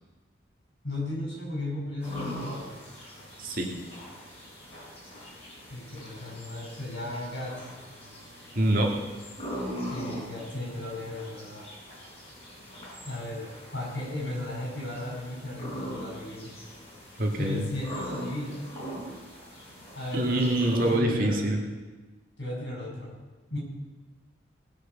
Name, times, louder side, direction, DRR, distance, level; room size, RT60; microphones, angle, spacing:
voice 1, 0.8-2.8 5.7-7.7 9.9-11.7 13.0-16.5 17.4-18.7 19.9-20.5 20.8-21.6 22.4-23.1 23.5-23.6, left 2 dB, 80° left, -2 dB, 5.9 m, -35 dB
sound 1, 2.0-21.0, equal, 30° left, 5.7 m, -41 dB
voice 2, 3.4-3.7 8.5-9.0 17.2-17.6 20.1-21.6, right 1 dB, 50° right, 0 dB, 2.1 m, -25 dB
19.5 x 6.5 x 6.9 m, 1.2 s
head